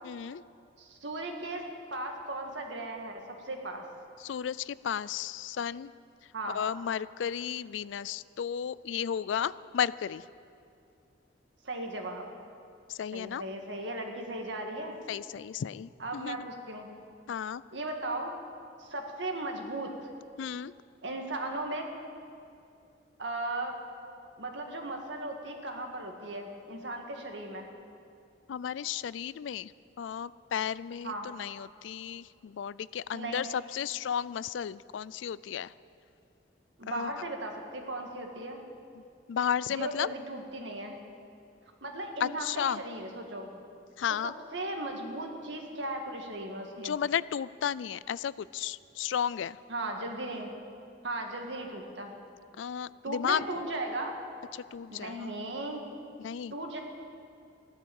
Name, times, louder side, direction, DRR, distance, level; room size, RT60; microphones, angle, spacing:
voice 1, 0.0-0.4 4.2-5.9 6.5-10.2 12.9-13.4 15.1-16.5 17.3-17.6 20.4-20.7 28.5-29.7 30.0-35.7 36.9-37.1 39.3-40.1 42.2-42.8 44.0-44.3 46.8-49.6 52.6-53.4 54.5-55.3 56.2-56.5, left 8 dB, 80° left, 19 dB, 0.4 m, -33 dB
voice 2, 0.8-1.6 1.9-3.8 6.3-6.6 11.6-12.3 13.1-15.0 16.0-16.9 17.7-18.3 18.8-20.1 21.0-21.9 23.2-23.8 24.4-27.7 31.0-31.3 33.1-33.5 36.8-38.6 39.7-41.0 41.8-43.5 44.2-47.0 49.7-50.5 51.0-52.1 53.0-54.2 54.9-55.8 56.5-56.8, right 2 dB, 75° right, 2 dB, 2.0 m, -37 dB
15.5 x 12.0 x 7.1 m, 2.5 s
head